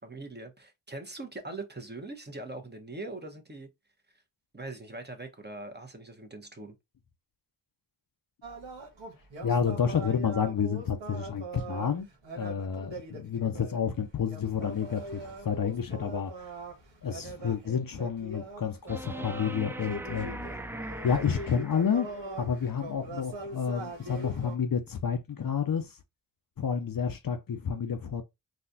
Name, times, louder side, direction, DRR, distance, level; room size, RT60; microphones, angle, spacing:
voice 1, 0.0-3.7 4.5-6.7, right 2 dB, 25° right, 1.0 m, -41 dB
sound 1, 8.4-24.5, right 2 dB, 90° right, 1.3 m, -42 dB
voice 2, 9.4-12.1 12.4-16.5 17.0-20.5 21.0-22.1 22.4-26.0 26.6-28.2, left 7 dB, 50° left, 0.6 m, -30 dB
sound 2, 18.9-22.2 24.9-25.0, right 1 dB, 5° right, 0.3 m, -40 dB
4.0 x 2.5 x 2.6 m
cardioid pair, 40°, 43 cm